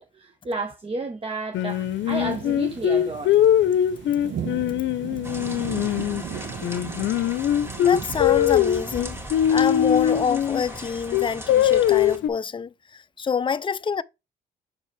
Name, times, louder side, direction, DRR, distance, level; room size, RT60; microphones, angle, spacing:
voice 1, 0.0-3.4, right 3 dB, 30° right, 0.9 m, -32 dB
Singing, 1.5-6.2 6.6-10.6 11.1-12.3, left 11 dB, 75° left, 0.7 m, -21 dB
sound 1, 1.7-10.3, right 8 dB, 70° right, 0.9 m, -38 dB
sound 2, 5.2-12.2, equal, 10° right, 2.1 m, -38 dB
voice 2, 7.8-9.2 9.5-14.0, left 6 dB, 25° left, 0.4 m, -27 dB
6.6 x 4.5 x 3.2 m
cardioid pair, 75°, 20 cm